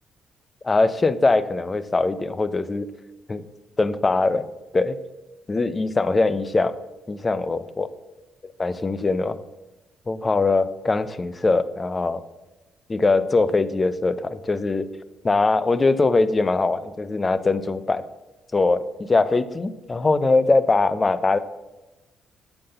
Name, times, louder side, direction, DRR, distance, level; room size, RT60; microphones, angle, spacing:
voice 1, 0.6-2.9 3.3-3.4 3.8-4.4 4.7-5.0 5.5-6.7 7.1-7.9 8.4-9.4 10.1-12.2 12.9-14.9 15.2-18.0 18.5-21.4, left 3 dB, 25° left, 15 dB, 0.6 m, -21 dB
7.7 x 5.9 x 6.7 m, 1.1 s
cardioid pair, 90°, 0 cm